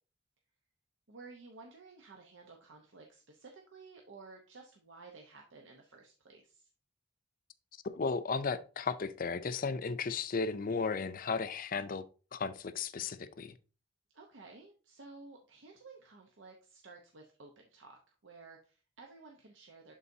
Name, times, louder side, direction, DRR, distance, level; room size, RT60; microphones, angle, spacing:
voice 1, 1.1-6.7 14.1-19.9, right 3 dB, 85° right, 0.9 m, -54 dB
voice 2, 7.8-12.0 12.3-13.5, left 4 dB, 50° left, 0.5 m, -35 dB
11.0 x 4.0 x 2.7 m
head